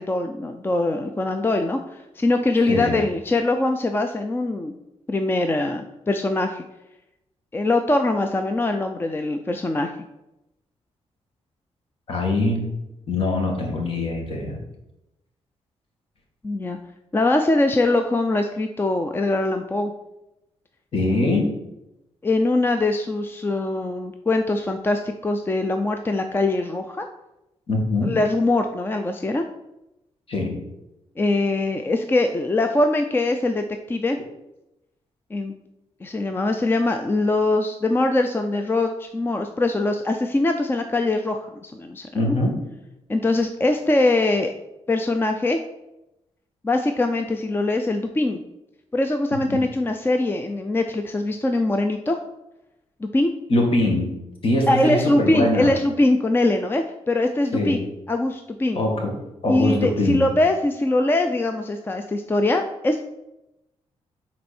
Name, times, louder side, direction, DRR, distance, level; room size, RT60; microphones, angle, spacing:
voice 1, 0.0-4.8 5.1-6.6 7.5-9.9 16.4-16.8 17.1-19.9 22.2-27.1 28.0-29.5 31.2-34.2 35.3-35.5 36.0-42.4 43.1-44.5 44.9-45.6 46.6-48.4 48.9-52.2 53.0-53.3 54.7-57.8 58.1-58.8 59.5-63.0, left 2 dB, 20° left, 6 dB, 0.5 m, -22 dB
voice 2, 2.7-3.0 12.1-12.7 13.1-14.6 20.9-21.5 27.7-28.1 30.3-30.6 42.1-42.6 49.5-49.6 53.5-54.1 54.4-55.7 57.5-57.8 58.8-59.1 59.4-60.3, left 2 dB, 55° left, 1 dB, 2.0 m, -22 dB
10.0 x 4.2 x 4.4 m, 0.92 s
cardioid pair, 110°, 11 cm